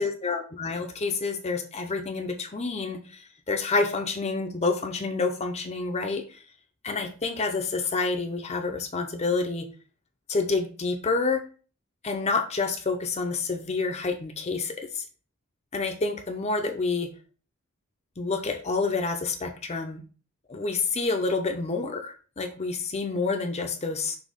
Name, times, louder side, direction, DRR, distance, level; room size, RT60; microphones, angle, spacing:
voice 1, 0.0-6.4 6.8-9.7 10.3-11.4 12.0-15.0 15.7-17.1 18.2-20.0 20.5-24.2, left 3 dB, 30° left, 4 dB, 0.7 m, -28 dB
6.2 x 2.9 x 5.2 m, 0.37 s
head